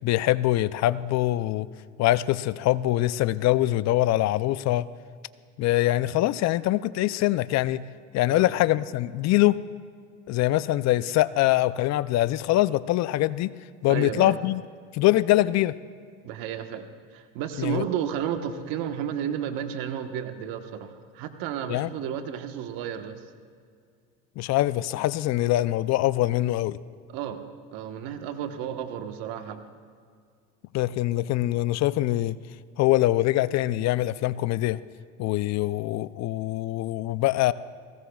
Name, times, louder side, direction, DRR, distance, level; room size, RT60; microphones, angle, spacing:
voice 1, 0.0-1.7 2.0-4.9 5.6-7.9 8.1-9.6 10.3-13.6 13.8-14.6 14.9-15.7 17.6-17.8 21.7-21.9 24.4-26.8 30.7-32.4 32.8-34.8 35.2-37.5, left 15 dB, 45° left, 17 dB, 0.5 m, -23 dB
voice 2, 13.9-14.4 16.2-23.2 27.1-27.4 27.7-29.6, right 9 dB, 65° right, 7 dB, 1.3 m, -32 dB
23.0 x 19.0 x 2.3 m, 2.1 s
supercardioid pair, 100°, 37 cm